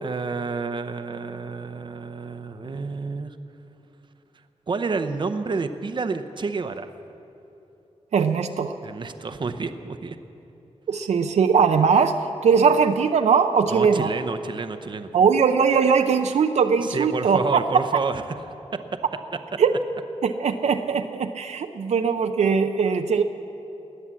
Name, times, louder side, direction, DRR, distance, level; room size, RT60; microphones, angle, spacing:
voice 1, 0.0-3.4 4.7-6.9 8.8-10.2 13.7-15.1 16.8-18.2, right 4 dB, 40° right, 9 dB, 0.8 m, -29 dB
voice 2, 8.1-8.7 10.9-14.1 15.1-17.6 19.6-19.7 20.2-23.2, right 6 dB, 75° right, 6 dB, 0.6 m, -20 dB
19.5 x 9.7 x 7.5 m, 2.9 s
wide cardioid pair, 110°, 12 cm